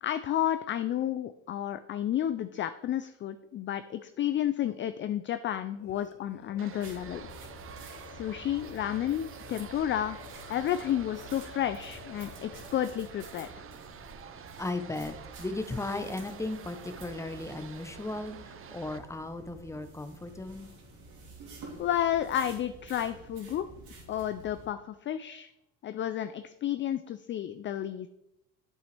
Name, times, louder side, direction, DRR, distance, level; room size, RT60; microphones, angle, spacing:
voice 1, 0.0-7.3 8.1-10.2 10.5-13.5 21.8-23.7 24.1-25.5 25.8-28.1, left 11 dB, 35° left, 11 dB, 0.4 m, -31 dB
sound 1, 5.7-13.1, left 9 dB, 55° left, 0.8 m, -53 dB
sound 2, 6.6-19.0, right 7 dB, 35° right, 0.7 m, -48 dB
sound 3, 6.8-24.7, right 3 dB, 70° right, 3.0 m, -50 dB
voice 2, 14.6-20.7, left 2 dB, 10° left, 8 dB, 0.8 m, -36 dB
8.0 x 8.0 x 3.3 m, 0.87 s
supercardioid pair, 85°, 37 cm